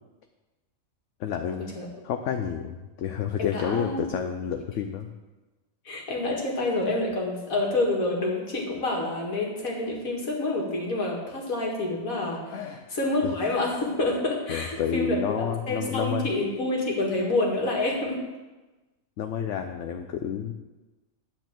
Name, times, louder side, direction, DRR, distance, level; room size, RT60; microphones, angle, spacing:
voice 1, 1.2-1.7 2.0-5.1 12.5-12.9 13.2-13.3 14.5-16.3 19.2-20.5, left 8 dB, 65° left, 6 dB, 0.9 m, -30 dB
voice 2, 3.4-4.0 5.9-12.6 12.9-18.2, left 2 dB, 80° left, -1 dB, 2.3 m, -28 dB
10.5 x 4.5 x 7.5 m, 1.2 s
omnidirectional pair, 1.4 m